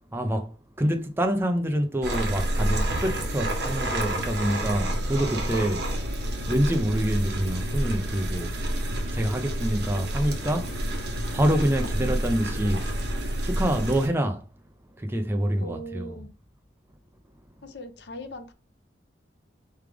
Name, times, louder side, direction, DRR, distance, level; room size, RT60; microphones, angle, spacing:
voice 1, 0.1-5.9 6.5-8.6 9.1-10.8 11.3-12.9 13.3-14.5 15.0-16.2, equal, 10° right, 0.4 m, -26 dB
sound 1, 2.0-14.1, right 1 dB, 60° right, 1.1 m, -29 dB
voice 2, 15.6-16.3 17.6-18.5, equal, 65° left, 0.7 m, -39 dB
4.7 x 3.3 x 3.4 m
head